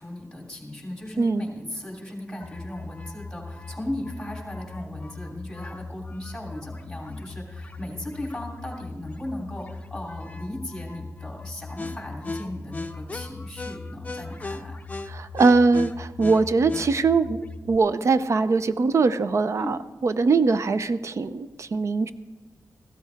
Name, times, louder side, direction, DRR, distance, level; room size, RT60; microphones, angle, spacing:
voice 1, 0.0-14.8 19.6-19.8, left 1 dB, 5° left, -1 dB, 3.1 m, -36 dB
sound 1, 2.4-17.8, left 3 dB, 25° left, 0.6 m, -38 dB
voice 2, 15.1-22.1, right 4 dB, 50° right, 13 dB, 0.5 m, -22 dB
15.5 x 12.5 x 3.5 m, 1.2 s
wide cardioid pair, 100°, 6 cm